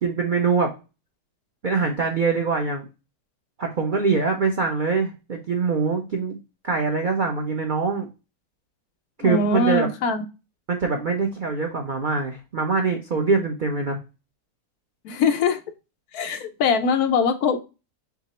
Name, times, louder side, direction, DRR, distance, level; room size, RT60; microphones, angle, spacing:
voice 1, 0.0-0.7 1.6-2.8 3.6-6.4 6.6-8.1 9.2-9.9 10.7-14.0, right 4 dB, 65° right, 3 dB, 0.4 m, -23 dB
voice 2, 9.2-10.3 15.0-15.6 16.1-17.6, left 4 dB, 70° left, 7 dB, 1.1 m, -22 dB
5.9 x 2.0 x 4.0 m, 0.30 s
omnidirectional pair, 1.7 m